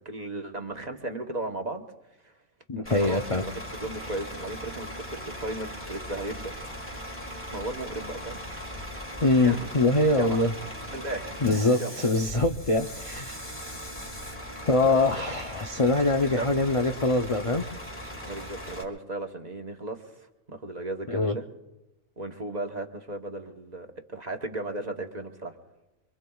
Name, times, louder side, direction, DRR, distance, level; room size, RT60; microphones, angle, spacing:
voice 1, 0.0-1.8 2.2-2.3 2.8-3.5 3.8-6.5 6.9-8.4 9.4-9.7 10.2-10.5 10.9-11.4 11.7-11.9 14.9-15.3 16.2-16.5 18.2-20.0 20.5-21.5 22.2-25.5, right 2 dB, 35° right, 3 dB, 1.1 m, -36 dB
voice 2, 2.7-3.4 9.2-10.5 11.4-13.4 14.6-17.6 21.1-21.4, left 2 dB, 40° left, 4 dB, 0.5 m, -23 dB
Bus / Idling, 2.8-18.8, equal, 10° left, 1.8 m, -39 dB
25.5 x 24.5 x 2.3 m, 1.0 s
omnidirectional pair, 1.4 m